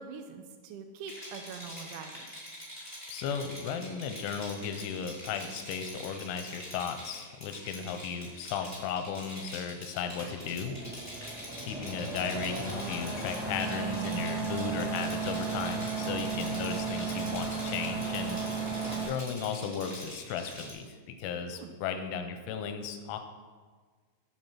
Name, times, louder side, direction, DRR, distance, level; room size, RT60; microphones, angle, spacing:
voice 1, 0.0-2.2 18.6-19.0 21.5-21.7, right 5 dB, 80° right, 6 dB, 2.8 m, -44 dB
Rattle, 1.0-20.7, equal, 15° left, 0.5 m, -45 dB
voice 2, 3.1-10.8 11.6-18.4 19.1-23.2, left 6 dB, 80° left, 7 dB, 3.0 m, -35 dB
sound 1, 10.2-19.0, right 5 dB, 35° right, 0.6 m, -35 dB
8.0 x 7.7 x 5.7 m, 1.5 s
omnidirectional pair, 5.9 m